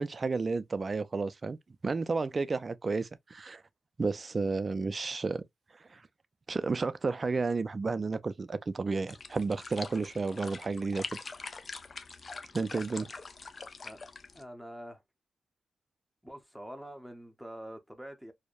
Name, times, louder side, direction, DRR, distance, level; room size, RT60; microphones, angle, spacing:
voice 1, 0.0-1.6 1.8-3.6 4.0-5.4 5.9-6.0 6.5-11.0 12.5-13.1, right 4 dB, 45° right, 0.3 m, -32 dB
sound 1, 9.1-14.4, left 4 dB, 50° left, 0.4 m, -44 dB
voice 2, 14.3-15.0 16.2-18.3, equal, ahead, 0.6 m, -45 dB
2.6 x 2.1 x 2.3 m
cardioid pair, 50°, 0 cm